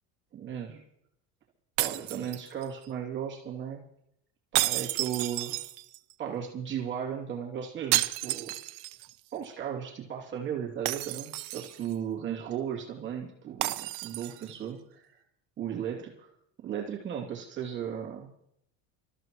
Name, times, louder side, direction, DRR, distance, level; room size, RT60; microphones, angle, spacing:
voice 1, 0.3-0.8 1.8-3.8 4.5-5.6 6.2-8.6 9.3-15.2 15.6-16.3 16.6-18.3, right 8 dB, 35° right, -2 dB, 2.8 m, -36 dB
sound 1, 1.8-2.9 4.5-6.1 7.9-9.1 9.4-9.5 10.9-11.9 13.6-14.5, right 19 dB, 85° right, 0.9 m, -31 dB
27.5 x 14.5 x 3.0 m, 0.74 s
cardioid pair, 160°, 33 cm